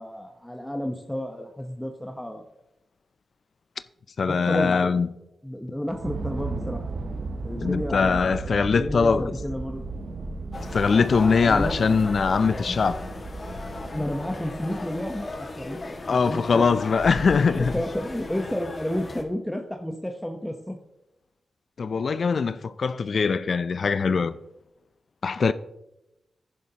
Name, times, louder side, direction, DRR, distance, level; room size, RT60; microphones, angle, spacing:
voice 1, 0.0-2.4 4.2-5.0 5.4-6.8 7.4-9.8 11.4-11.8 13.8-15.8 16.1-16.8 17.5-20.8, equal, 5° left, 1.0 m, -31 dB
voice 2, 4.2-5.1 7.6-9.3 10.6-13.0 16.1-17.7 21.8-24.3 25.2-25.5, left 5 dB, 60° left, 0.4 m, -22 dB
sound 1, 5.9-15.5, right 3 dB, 60° right, 0.8 m, -35 dB
sound 2, 10.5-19.2, left 2 dB, 40° left, 1.8 m, -36 dB
10.5 x 10.5 x 2.9 m
cardioid pair, 55°, 0 cm